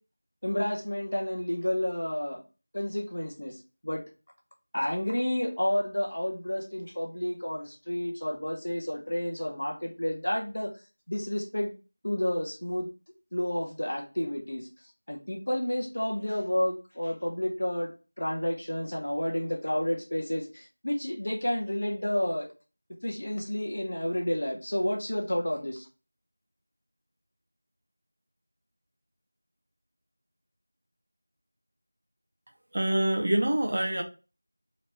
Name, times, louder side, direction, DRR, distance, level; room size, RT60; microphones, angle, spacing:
voice 1, 0.4-2.4 2.7-4.0 4.7-10.7 11.1-11.7 12.0-12.9 13.3-14.7 15.1-17.9 18.2-22.5 23.0-25.9, left 1 dB, 55° left, 2 dB, 0.9 m, -30 dB
voice 2, 32.7-34.0, right 1 dB, 30° right, 4 dB, 0.4 m, -25 dB
3.0 x 2.8 x 3.3 m, 0.33 s
figure-of-eight pair, 180°, 0 cm